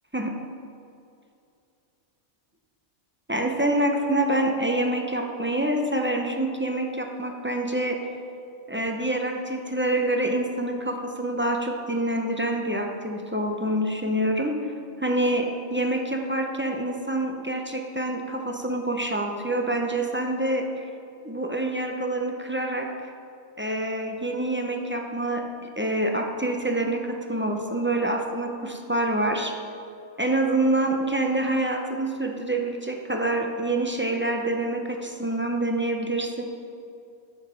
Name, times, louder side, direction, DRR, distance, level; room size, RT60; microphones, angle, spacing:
voice 1, 3.3-8.0 8.7-14.6 15.0-20.9 21.2-22.9 23.6-29.6 30.2-36.4, right 1 dB, 10° right, 2 dB, 0.8 m, -26 dB
12.0 x 7.2 x 5.7 m, 2.6 s
omnidirectional pair, 1.3 m